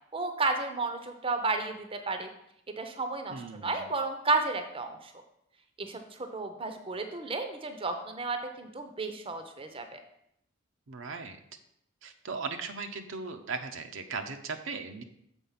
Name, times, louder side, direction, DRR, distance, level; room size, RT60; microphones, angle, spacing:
voice 1, 0.1-2.3 2.8-5.1 5.8-10.0, right 3 dB, 25° right, 7 dB, 0.6 m, -32 dB
voice 2, 3.3-3.9 10.9-11.4 12.0-15.0, right 4 dB, 70° right, 6 dB, 0.7 m, -38 dB
7.1 x 4.2 x 5.7 m, 0.75 s
head